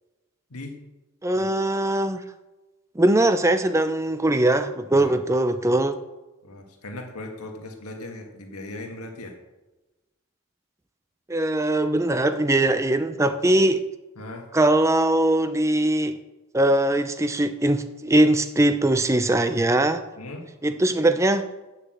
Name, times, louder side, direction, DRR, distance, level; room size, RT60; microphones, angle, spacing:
voice 1, 1.2-2.2 3.0-6.0 11.3-13.8 14.5-16.2 16.5-20.0 20.6-21.5, right 1 dB, 15° right, 10 dB, 0.5 m, -21 dB
voice 2, 6.4-9.4 14.2-14.5 20.2-20.5, left 2 dB, 85° left, 3 dB, 1.8 m, -38 dB
9.5 x 6.6 x 7.7 m, 1.1 s
head